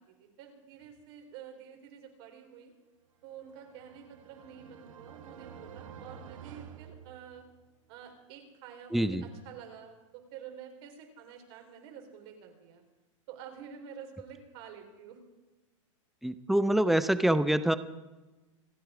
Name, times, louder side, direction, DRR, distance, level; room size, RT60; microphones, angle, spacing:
voice 1, 0.0-2.7 3.2-7.4 7.9-12.8 13.3-15.2, right 8 dB, 50° right, 3 dB, 3.8 m, -49 dB
sound 1, 3.3-7.8, right 7 dB, 80° right, 1.5 m, -50 dB
voice 2, 8.9-9.3 16.2-17.8, right 1 dB, ahead, 12 dB, 0.6 m, -25 dB
27.0 x 9.2 x 4.9 m, 1.1 s
hypercardioid pair, 140°, 17 cm